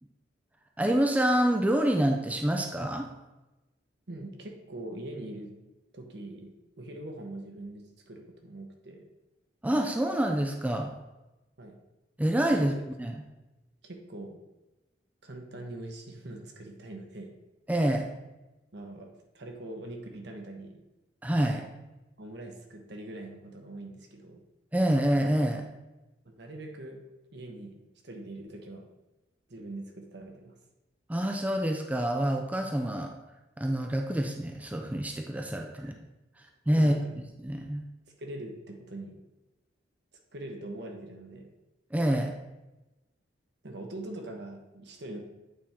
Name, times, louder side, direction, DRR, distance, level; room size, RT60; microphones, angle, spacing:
voice 1, 0.8-3.1 9.6-10.9 12.2-12.7 13.0-13.1 17.7-18.1 21.2-21.7 24.7-25.6 31.1-33.1 33.6-35.9 36.7-36.9 37.4-37.8 41.9-42.3, right 1 dB, 10° right, 3 dB, 0.5 m, -27 dB
voice 2, 4.1-5.5 5.9-9.0 11.6-11.8 12.5-12.7 13.8-14.4 15.2-17.3 18.7-19.1 19.3-20.8 22.2-24.4 26.2-27.0 27.3-28.9 29.5-30.6 35.7-35.9 36.8-37.1 38.2-39.2 40.3-41.5 43.6-45.2, right 1 dB, 65° right, 3 dB, 1.1 m, -42 dB
8.6 x 3.6 x 4.2 m, 1.0 s
head